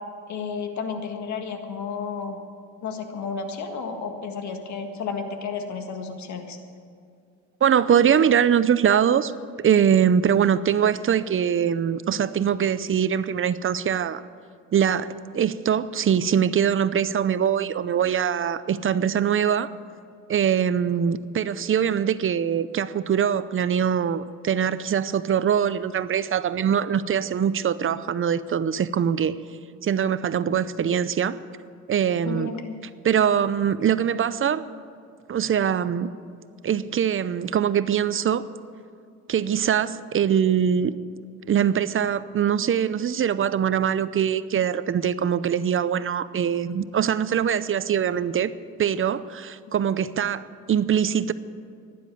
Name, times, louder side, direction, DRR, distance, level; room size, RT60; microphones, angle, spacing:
voice 1, 0.3-2.4 2.8-6.6 32.2-32.8, left 5 dB, 70° left, 5 dB, 1.7 m, -32 dB
voice 2, 7.6-9.3 9.6-14.2 14.7-19.7 20.3-29.3 29.8-31.4 31.9-32.6 33.0-34.6 35.3-36.1 36.6-38.5 39.3-40.9 41.5-48.5 48.8-51.3, right 8 dB, 45° right, 15 dB, 0.6 m, -22 dB
12.5 x 10.5 x 9.3 m, 2.3 s
cardioid pair, 90°, 30 cm